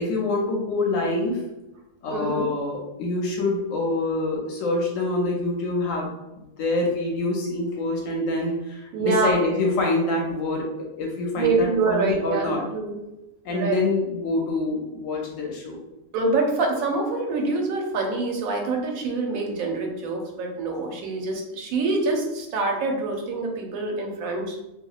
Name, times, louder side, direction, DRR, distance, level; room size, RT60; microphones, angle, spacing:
voice 1, 0.0-1.4 2.0-6.1 6.4-12.6 13.4-15.8, left 2 dB, 75° left, -1 dB, 0.9 m, -26 dB
voice 2, 2.1-2.5 8.9-9.3 11.4-13.0 13.5-13.9 16.1-24.6, right 3 dB, 90° right, 1 dB, 1.0 m, -25 dB
2.8 x 2.6 x 2.3 m, 0.95 s
omnidirectional pair, 1.4 m